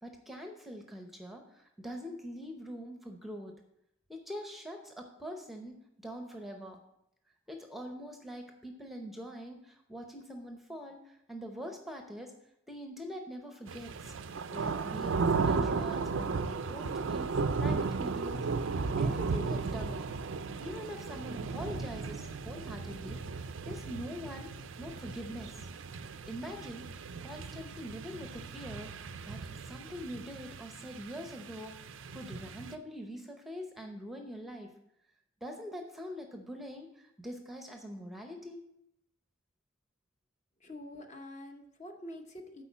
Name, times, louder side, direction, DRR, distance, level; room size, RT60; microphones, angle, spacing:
voice 1, 0.0-3.5 4.1-6.8 7.5-12.3 12.7-14.1 14.5-20.1 20.6-24.5 24.8-25.7 26.2-26.9 27.2-31.7 32.1-34.7 35.4-38.6, equal, ahead, 3 dB, 0.7 m, -44 dB
Single Thunder Clap, 13.7-32.8, right 4 dB, 70° right, 0.5 m, -35 dB
voice 2, 40.6-42.6, left 1 dB, 35° left, 4 dB, 0.9 m, -46 dB
8.4 x 4.7 x 7.2 m, 0.78 s
head